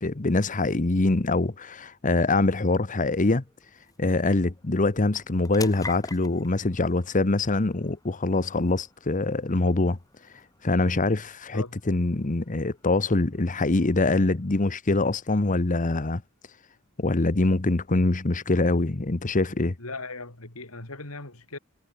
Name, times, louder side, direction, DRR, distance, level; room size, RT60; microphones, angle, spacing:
voice 1, 0.0-3.4 4.0-10.0 10.6-16.2 17.0-19.7, left 2 dB, 35° left, 1.0 m, -24 dB
sound 1, 2.5-17.0, left 3 dB, 15° left, 4.8 m, -48 dB
voice 2, 19.8-21.6, left 3 dB, 70° left, 4.2 m, -38 dB
head